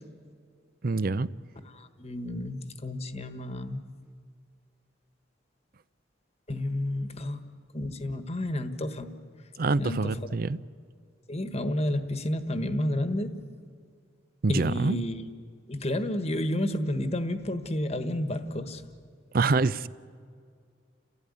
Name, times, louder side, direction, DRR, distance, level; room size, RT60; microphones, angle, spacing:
voice 1, 0.8-1.3 9.6-10.6 14.4-15.0 19.3-19.9, right 3 dB, 50° right, 17 dB, 0.5 m, -25 dB
voice 2, 1.6-3.8 6.5-7.4 7.7-9.1 9.8-10.2 11.3-13.4 14.5-15.3 15.7-18.8, left 1 dB, 35° left, 9 dB, 1.4 m, -31 dB
29.5 x 16.0 x 9.9 m, 2.2 s
head